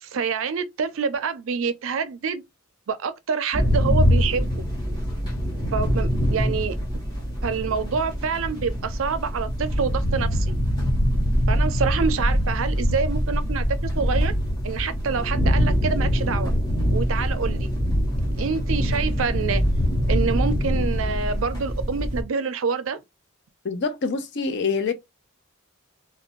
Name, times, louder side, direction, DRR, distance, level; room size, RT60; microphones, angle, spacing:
voice 1, 0.0-2.4 2.9-4.6 5.7-6.8 7.4-10.5 11.5-14.3 14.6-16.5 16.9-17.7 18.4-19.6 20.1-23.0, right 5 dB, 65° right, 0.4 m, -27 dB
sound 1, 3.5-22.2, equal, 20° left, 1.1 m, -23 dB
voice 2, 23.6-24.9, left 4 dB, 55° left, 0.5 m, -25 dB
2.4 x 2.1 x 2.9 m
head